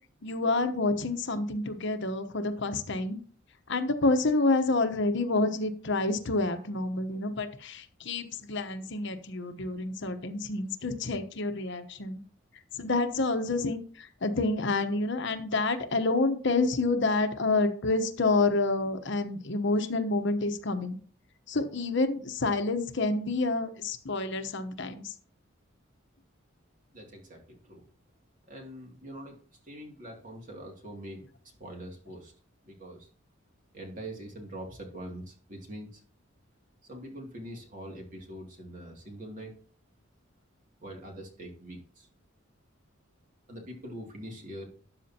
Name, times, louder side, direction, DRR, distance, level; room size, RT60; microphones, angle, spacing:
voice 1, 0.2-3.2 3.7-12.2 12.7-21.0 21.5-25.1, left 3 dB, 60° left, 8 dB, 1.0 m, -28 dB
voice 2, 26.9-27.9 28.5-29.4 29.6-32.3 32.6-33.1 33.7-36.0 36.8-39.6 40.8-42.1 43.5-44.7, right 1 dB, 40° right, 1 dB, 2.5 m, -43 dB
13.0 x 8.8 x 2.9 m, 0.44 s
head